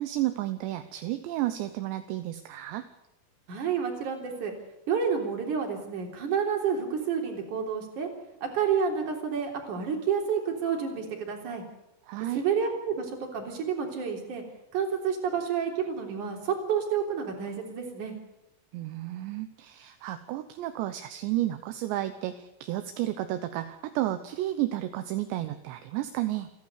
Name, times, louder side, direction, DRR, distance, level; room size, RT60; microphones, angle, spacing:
voice 1, 0.0-2.9 12.1-12.4 18.7-26.5, right 14 dB, 75° right, 9 dB, 3.0 m, -32 dB
voice 2, 3.5-4.5 4.9-8.1 8.4-11.6 12.3-14.4 14.7-18.1, right 6 dB, 45° right, 2 dB, 4.5 m, -29 dB
28.5 x 11.5 x 8.2 m, 0.86 s
omnidirectional pair, 5.4 m